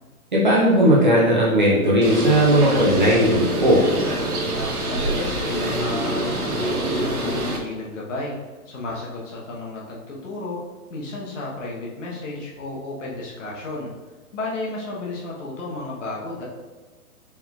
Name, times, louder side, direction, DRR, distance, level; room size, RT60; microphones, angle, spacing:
voice 1, 0.3-3.8, right 1 dB, 35° right, -6 dB, 0.6 m, -17 dB
Bird, 2.0-7.6, right 1 dB, 75° right, 1.2 m, -25 dB
voice 2, 4.9-8.4 8.7-10.6 10.9-13.9 14.3-16.5, left 2 dB, 55° left, -4 dB, 1.0 m, -32 dB
4.4 x 3.7 x 2.3 m, 1.2 s
hypercardioid pair, 175°, 45 cm